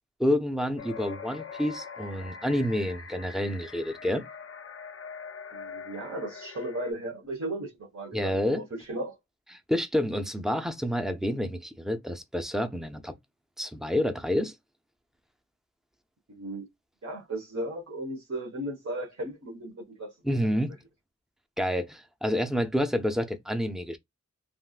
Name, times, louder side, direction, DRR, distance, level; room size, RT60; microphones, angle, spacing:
voice 1, 0.2-4.2 8.1-8.6 9.7-13.1 13.6-14.5 20.2-20.8 21.6-24.0, equal, ahead, 0.6 m, -28 dB
sound 1, 0.8-6.9, left 5 dB, 50° left, 0.5 m, -43 dB
voice 2, 5.5-9.1 16.3-16.7 17.0-20.1, right 1 dB, 55° right, 1.3 m, -36 dB
3.5 x 2.5 x 2.4 m
wide cardioid pair, 65°, 30 cm